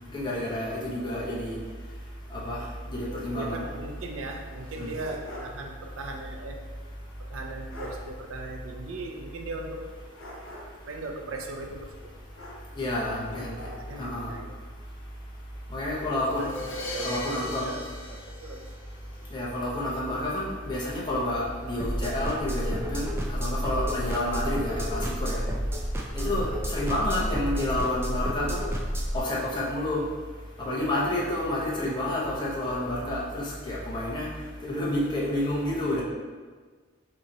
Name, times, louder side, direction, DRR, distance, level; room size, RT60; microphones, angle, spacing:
voice 1, 0.1-1.6 2.3-2.6 2.9-3.7 4.8-4.9 12.8-13.5 14.0-14.3 15.7-16.5 17.0-17.8 19.3-25.4 26.1-28.6 29.1-30.0 30.6-34.3 34.6-36.0, left 1 dB, 20° left, -5 dB, 0.8 m, -29 dB
voice 2, 3.1-6.6 7.2-9.8 10.9-12.1 13.3-14.5 16.0-16.5 16.9-17.8 18.1-18.6 26.1-26.4 31.1-31.4, right 2 dB, 75° right, 2 dB, 0.5 m, -38 dB
sound 1, 4.6-5.6 6.0-6.1 7.3-7.4 7.7-8.0 10.1-10.9 12.3-12.9 13.3-14.1, left 1 dB, 85° left, 1.3 m, -43 dB
Crash cymbal, 16.3-19.2, left 1 dB, 65° left, 0.8 m, -38 dB
sound 2, 21.8-29.2, equal, 10° right, 0.3 m, -30 dB
4.1 x 2.9 x 3.7 m, 1.5 s
head